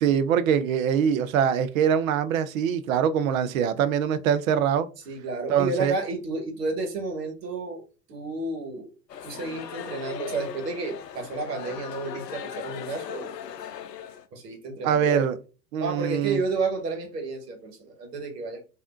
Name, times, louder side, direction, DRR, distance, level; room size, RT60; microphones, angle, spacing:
voice 1, 0.0-4.9 5.5-5.9 14.8-15.4 15.7-16.4, right 8 dB, 55° right, 0.5 m, -23 dB
voice 2, 5.1-7.8 8.1-8.9 9.2-13.4 14.3-15.3 15.8-18.6, right 3 dB, 70° right, 1.3 m, -31 dB
sound 1, 9.1-14.2, left 8 dB, 80° left, 0.6 m, -38 dB
3.3 x 2.6 x 2.4 m
hypercardioid pair, 100°, 50 cm